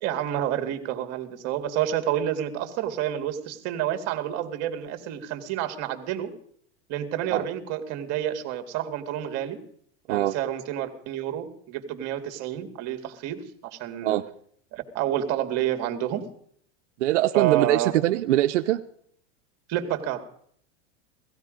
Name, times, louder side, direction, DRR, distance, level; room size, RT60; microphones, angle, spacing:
voice 1, 0.0-6.3 6.9-9.6 10.1-14.1 14.7-16.2 17.3-17.9 19.7-20.2, right 11 dB, 45° right, 7 dB, 2.1 m, -29 dB
voice 2, 17.0-18.8, right 14 dB, 90° right, 8 dB, 0.8 m, -22 dB
17.5 x 15.5 x 5.1 m, 0.65 s
supercardioid pair, 135°, 35 cm